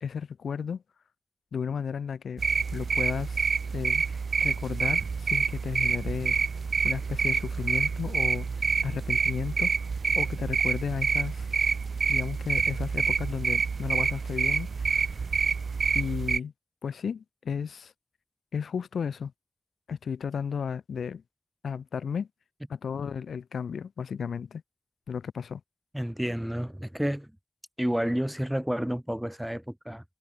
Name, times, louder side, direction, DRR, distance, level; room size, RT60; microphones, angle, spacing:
voice 1, 0.0-0.8 1.5-2.4 2.7-6.4 6.8-8.5 8.8-9.9 10.1-11.5 12.1-15.1 15.9-16.5 16.8-17.9 18.5-19.3 19.9-21.2 21.6-22.3 22.7-24.6 25.1-25.6, left 6 dB, 80° left, 1.1 m, -33 dB
sound 1, 2.4-16.4, right 5 dB, 60° right, 1.2 m, -27 dB
voice 2, 25.9-27.3 27.8-30.0, equal, 5° right, 3.0 m, -30 dB
wide cardioid pair, 85°, 0 cm